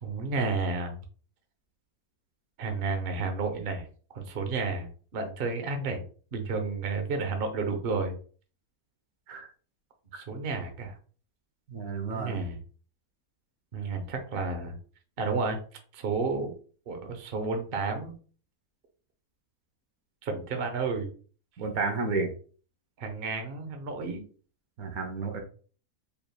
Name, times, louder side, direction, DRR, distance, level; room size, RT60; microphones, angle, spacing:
voice 1, 0.0-1.0 2.6-6.0 6.3-8.2 10.1-11.0 12.1-12.6 13.7-14.8 15.2-15.6 15.9-16.5 16.9-18.1 20.2-21.1 23.0-24.2, right 4 dB, 50° right, 5 dB, 0.8 m, -31 dB
voice 2, 11.7-12.3 21.6-22.3 24.8-25.4, right 4 dB, 65° right, 4 dB, 1.2 m, -31 dB
4.6 x 3.3 x 2.2 m, 0.40 s
omnidirectional pair, 1.7 m